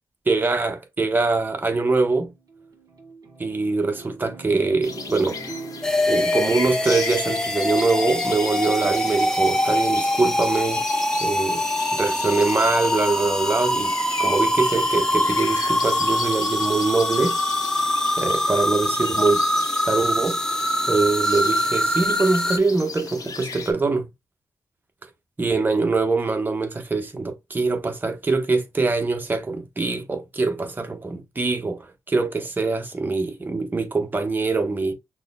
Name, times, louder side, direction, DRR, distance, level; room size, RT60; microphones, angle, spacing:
voice 1, 0.3-2.3 3.4-5.4 6.1-10.8 11.2-11.6 11.9-13.9 14.2-17.4 18.2-19.4 19.8-24.1 25.4-34.9, right 3 dB, 30° right, 0.9 m, -23 dB
sound 1, 2.2-7.6, right 4 dB, 60° right, 1.3 m, -43 dB
sound 2, 4.8-23.7, left 4 dB, 60° left, 0.9 m, -36 dB
sound 3, 5.8-22.6, left 1 dB, 10° left, 0.6 m, -23 dB
6.0 x 2.1 x 2.3 m
cardioid pair, 80°, 7 cm